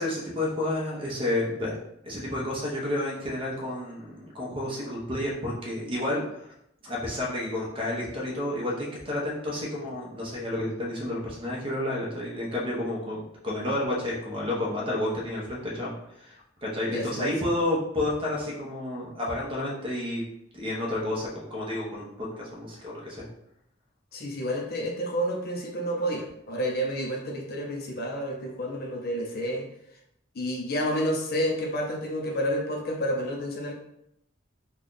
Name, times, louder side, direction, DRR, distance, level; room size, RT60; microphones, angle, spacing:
voice 1, 0.0-1.7 2.0-6.5 6.8-15.9 16.2-16.3 16.6-20.2 20.5-23.2, left 1 dB, 30° right, -3 dB, 0.9 m, -30 dB
voice 2, 16.9-17.3 24.1-29.7 30.3-33.7, equal, 55° left, 2 dB, 0.6 m, -30 dB
3.4 x 2.3 x 3.8 m, 0.79 s
head